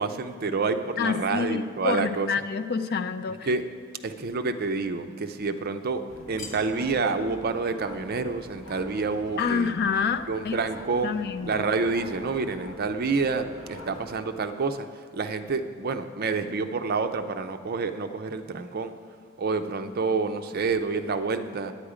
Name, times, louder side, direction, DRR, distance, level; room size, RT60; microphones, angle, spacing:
voice 1, 0.0-2.3 3.4-3.6 4.0-9.7 10.3-11.1 11.4-14.9 15.1-18.9 19.4-21.7, right 4 dB, 45° right, 8 dB, 0.5 m, -28 dB
voice 2, 1.0-3.5 9.4-10.6 11.0-11.7, left 5 dB, 50° left, 11 dB, 0.4 m, -28 dB
sound 1, 6.1-14.2, left 1 dB, 90° left, 1.6 m, -44 dB
9.8 x 8.8 x 4.9 m, 2.3 s
head